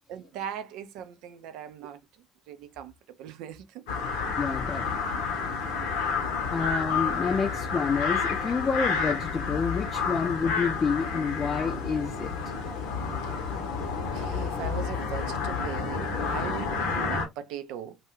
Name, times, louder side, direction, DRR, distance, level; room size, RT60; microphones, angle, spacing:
voice 1, 0.1-2.0 2.5-2.9 3.2-3.8 13.2-13.3 14.0-18.0, right 9 dB, 60° right, 0.4 m, -39 dB
sound 1, 3.9-17.3, left 5 dB, 65° left, 0.7 m, -30 dB
voice 2, 4.4-5.0 5.3-5.4 6.5-12.3, left 5 dB, 30° left, 0.5 m, -29 dB
2.4 x 2.2 x 3.0 m
figure-of-eight pair, 60°, 0 cm